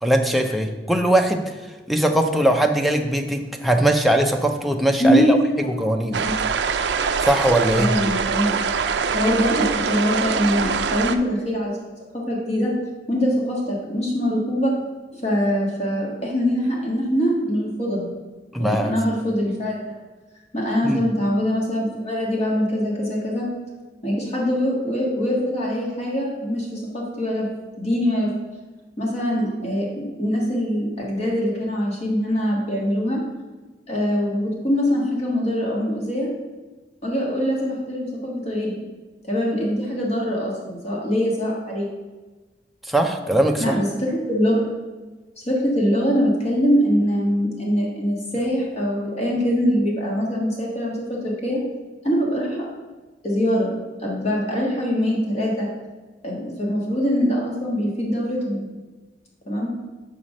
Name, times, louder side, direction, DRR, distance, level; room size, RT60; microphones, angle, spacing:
voice 1, 0.0-6.2 7.2-7.9 18.5-18.9 20.8-21.0 42.8-43.8, right 1 dB, ahead, 3 dB, 0.5 m, -21 dB
voice 2, 5.0-5.4 6.2-6.3 7.8-8.5 9.1-11.8 12.1-12.7 13.1-14.7 15.1-18.1 18.6-19.9 20.5-23.5 24.0-27.5 27.8-28.3 29.0-33.2 33.9-36.3 37.0-38.7 39.2-41.9 43.6-44.7 45.4-51.6 52.0-52.7 53.2-53.7 54.0-55.7 56.2-58.7 59.5-59.7, equal, 35° left, -3 dB, 1.5 m, -23 dB
sound 1, 6.1-11.2, right 6 dB, 65° right, 0.5 m, -23 dB
5.7 x 5.0 x 6.3 m, 1.3 s
head